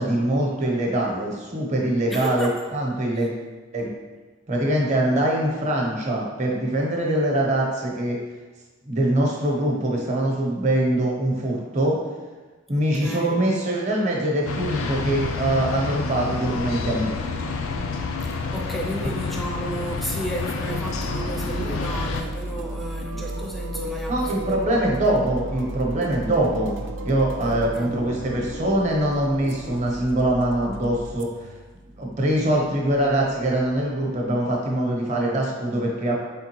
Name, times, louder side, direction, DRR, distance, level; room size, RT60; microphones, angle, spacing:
voice 1, 0.0-3.3 3.7-3.9 4.5-8.2 8.9-12.0 12.7-17.1 24.1-31.5 32.0-36.1, right 1 dB, 35° right, -1 dB, 0.9 m, -23 dB
voice 2, 2.1-2.6 3.2-3.3 12.7-13.4 18.2-24.8 27.4-28.0 32.4-32.6, equal, ahead, -1 dB, 0.5 m, -33 dB
sound 1, 14.5-22.2, left 4 dB, 90° left, 0.4 m, -29 dB
sound 2, 20.8-29.8, right 2 dB, 80° right, 0.8 m, -38 dB
sound 3, 20.9-34.3, right 1 dB, 60° right, 0.4 m, -36 dB
4.7 x 3.6 x 2.9 m, 1.3 s
head